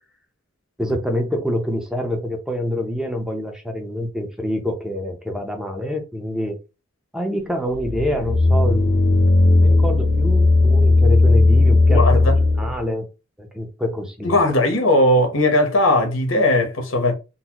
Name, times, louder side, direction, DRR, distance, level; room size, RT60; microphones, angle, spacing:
voice 1, 0.8-6.6 7.1-9.3 9.6-12.2 12.6-13.1 13.4-14.5, equal, 5° right, 0.6 m, -26 dB
sound 1, 7.7-12.8, left 2 dB, 60° left, 0.6 m, -16 dB
voice 2, 11.9-12.3 14.2-17.1, left 1 dB, 90° left, 0.9 m, -18 dB
3.9 x 2.1 x 2.9 m
head